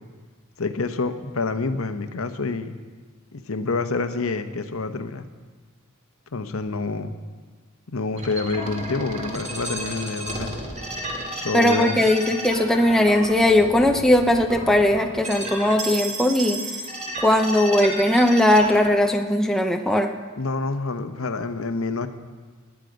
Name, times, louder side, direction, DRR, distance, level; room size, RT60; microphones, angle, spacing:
voice 1, 0.6-2.8 3.3-5.3 6.3-7.2 7.9-10.6 11.3-12.0 20.4-22.1, left 3 dB, 75° left, 9 dB, 0.9 m, -27 dB
sound 1, 8.2-18.9, right 1 dB, 35° right, 2.2 m, -32 dB
voice 2, 11.5-16.6 17.2-20.1, left 1 dB, ahead, 3 dB, 0.6 m, -19 dB
21.5 x 9.2 x 5.2 m, 1.4 s
head